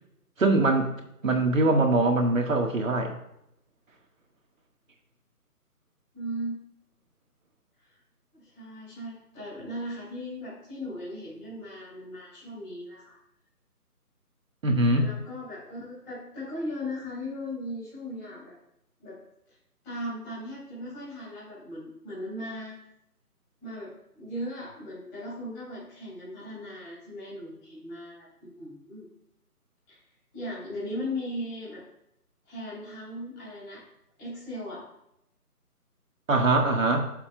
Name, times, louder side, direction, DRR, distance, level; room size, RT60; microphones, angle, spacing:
voice 1, 0.4-0.9 1.2-3.2 14.6-15.1 36.3-37.1, right 2 dB, 55° right, 3 dB, 1.8 m, -22 dB
voice 2, 6.1-6.6 8.3-13.2 14.9-18.6 19.0-19.2 19.5-19.6 19.8-22.8 23.6-28.3 28.6-29.0 29.9-30.0 30.3-31.8 32.5-33.8 34.2-34.8, left 1 dB, 10° left, -11 dB, 3.6 m, -37 dB
15.0 x 7.1 x 2.3 m, 0.79 s
figure-of-eight pair, 170°, 47 cm